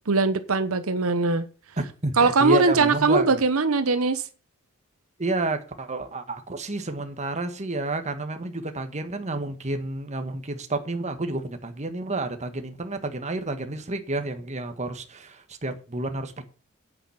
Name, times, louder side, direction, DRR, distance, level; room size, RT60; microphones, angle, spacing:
voice 1, 0.1-1.5 2.2-4.2, right 3 dB, 75° right, 0.9 m, -21 dB
voice 2, 1.8-3.4 5.2-16.4, right 2 dB, 35° right, 1.5 m, -30 dB
9.1 x 9.0 x 5.8 m
head